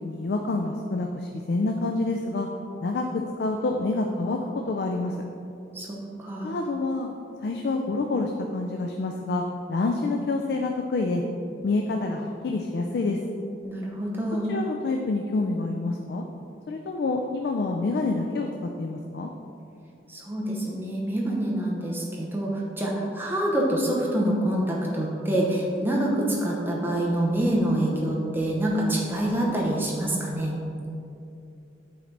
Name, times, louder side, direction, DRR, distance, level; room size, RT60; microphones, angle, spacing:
voice 1, 0.0-2.5 2.8-3.1 3.4-4.4 4.7-5.2 6.4-7.1 7.4-9.4 9.7-11.2 11.6-13.2 14.5-16.2 16.7-18.5 18.8-19.3, left 3 dB, 60° left, 3 dB, 0.3 m, -27 dB
voice 2, 5.7-6.5 13.6-14.5 20.1-30.5, right 1 dB, 10° right, -3 dB, 0.7 m, -26 dB
7.7 x 3.9 x 3.3 m, 2.7 s
head